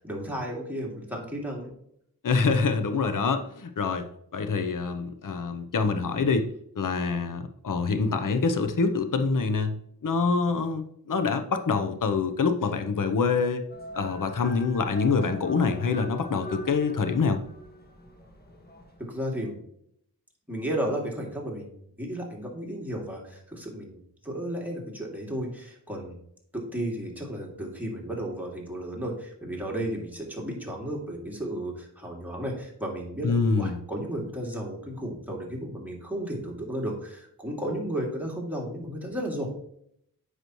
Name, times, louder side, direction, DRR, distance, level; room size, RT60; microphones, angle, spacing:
voice 1, 0.0-1.7 19.0-19.6 20.5-26.2 26.5-39.5, right 1 dB, 5° right, -2 dB, 2.5 m, -33 dB
voice 2, 2.2-4.1 4.3-6.5 6.8-9.7 10.0-13.6 13.9-17.4 33.2-33.8, left 4 dB, 55° left, 8 dB, 0.8 m, -25 dB
sound 1, 13.7-19.1, right 1 dB, 25° left, 1.6 m, -42 dB
7.9 x 6.1 x 3.0 m, 0.71 s
cardioid pair, 50°, 37 cm